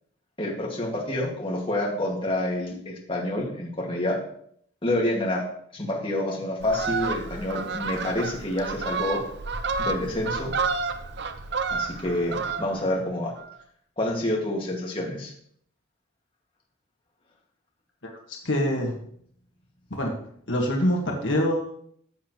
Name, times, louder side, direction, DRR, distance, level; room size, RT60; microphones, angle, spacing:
voice 1, 0.4-4.2 4.8-5.5 5.7-9.2 9.8-10.5 11.7-13.3 14.0-15.3, left 1 dB, 25° left, -2 dB, 2.1 m, -28 dB
Fowl, 6.6-12.9 13.3-13.5, right 4 dB, 55° right, 0.7 m, -30 dB
voice 2, 18.5-18.9 19.9-20.1 20.5-21.7, equal, 65° left, 0 dB, 1.8 m, -24 dB
14.5 x 7.3 x 3.2 m, 0.65 s
head